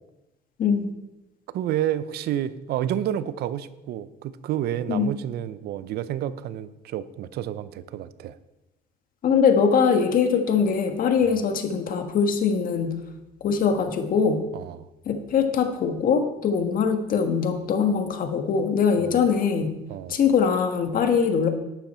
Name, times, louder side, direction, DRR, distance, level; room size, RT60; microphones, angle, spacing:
voice 1, 0.6-0.9 4.9-5.1 9.2-12.9 13.4-14.4 15.0-19.7 20.1-21.5, left 6 dB, 55° left, 5 dB, 1.6 m, -22 dB
voice 2, 1.5-8.4 11.2-11.4 14.5-14.9 19.0-19.2 19.9-20.2, right 11 dB, 70° right, 15 dB, 0.6 m, -30 dB
11.5 x 9.2 x 4.4 m, 0.98 s
cardioid pair, 110°, 17 cm